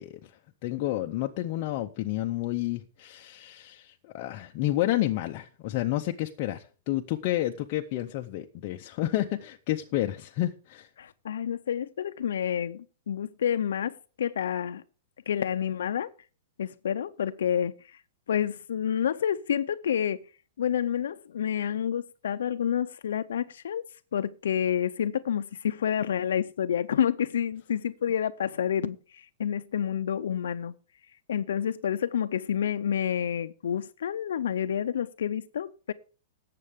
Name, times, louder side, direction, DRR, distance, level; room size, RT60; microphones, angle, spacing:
voice 1, 0.0-10.9, left 15 dB, 30° left, 0.6 m, -30 dB
voice 2, 11.0-14.8 15.3-16.1 16.6-18.0 18.3-20.2 20.6-23.9 24.1-30.8 31.3-35.9, left 9 dB, 85° left, 0.5 m, -29 dB
18.0 x 7.6 x 3.6 m
supercardioid pair, 175°, 0 cm